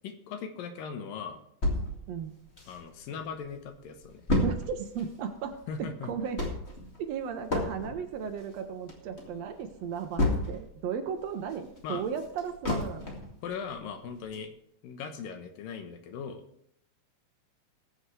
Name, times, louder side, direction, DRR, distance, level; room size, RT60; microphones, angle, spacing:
voice 1, 0.0-1.4 2.7-4.2 5.7-6.1 11.8-12.0 13.4-14.5 14.8-16.4, left 6 dB, 75° left, 7 dB, 2.8 m, -39 dB
sound 1, 1.6-3.2 3.5-3.6 3.8-10.8 11.2-13.4 13.8-13.9 14.3-14.4, left 1 dB, 25° left, 1.6 m, -31 dB
voice 2, 4.4-6.4 7.0-13.1, right 7 dB, 85° right, 5 dB, 1.4 m, -35 dB
20.5 x 8.0 x 3.3 m, 0.70 s
omnidirectional pair, 4.2 m